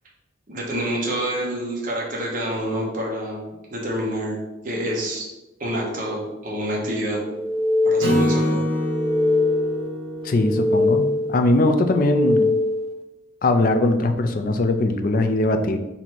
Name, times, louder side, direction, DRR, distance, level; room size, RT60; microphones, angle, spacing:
voice 1, 0.5-3.4 3.7-4.4 4.6-5.3 5.6-7.2 7.8-8.6, right 1 dB, 40° right, -3 dB, 1.1 m, -27 dB
sound 1, 7.3-8.4 8.8-9.9 10.3-11.4 11.8-13.0, left 2 dB, 25° right, 0.3 m, -22 dB
Acoustic guitar / Strum, 8.0-11.3, equal, 65° right, 1.6 m, -25 dB
voice 2, 10.2-12.5 13.4-15.8, left 2 dB, 45° left, 6 dB, 0.4 m, -20 dB
4.2 x 2.8 x 4.5 m, 0.99 s
head